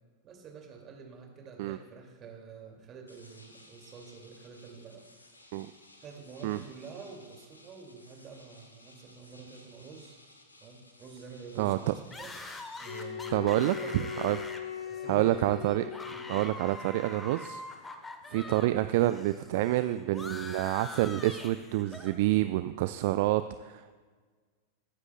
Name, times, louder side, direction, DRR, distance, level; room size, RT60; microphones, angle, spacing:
voice 1, 0.2-5.1 6.0-10.2 10.6-12.3 12.8-14.3 14.9-15.4 16.0-16.5 18.3-18.8, right 5 dB, 30° right, 2 dB, 2.2 m, -48 dB
sound 1, 3.1-13.0, left 1 dB, 80° left, 1.3 m, -57 dB
voice 2, 11.6-11.9 13.3-13.7 14.2-14.4 15.1-15.9 16.3-17.6 18.3-24.0, right 16 dB, 50° right, 12 dB, 0.3 m, -28 dB
sound 2, 12.1-18.7 19.0-22.2, left 2 dB, 15° left, 1.0 m, -44 dB
sound 3, 12.8-16.7, left 8 dB, 45° left, 1.5 m, -39 dB
22.0 x 9.6 x 2.2 m, 1.5 s
figure-of-eight pair, 90°, 0 cm